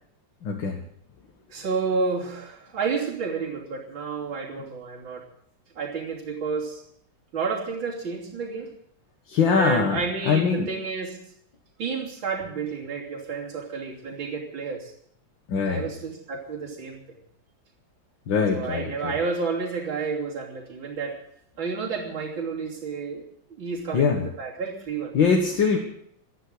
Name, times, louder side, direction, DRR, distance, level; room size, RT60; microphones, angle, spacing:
voice 1, 0.4-0.8 9.3-10.7 15.5-15.9 18.3-19.1 23.9-24.3 25.1-25.8, left 5 dB, 75° left, 2 dB, 2.3 m, -22 dB
voice 2, 1.5-5.2 5.8-6.8 7.3-8.7 9.6-11.2 11.8-14.9 15.7-17.0 18.5-21.2 21.6-23.2 23.6-25.1, right 4 dB, 85° right, -3 dB, 3.9 m, -30 dB
14.5 x 11.5 x 7.9 m, 0.69 s
omnidirectional pair, 2.1 m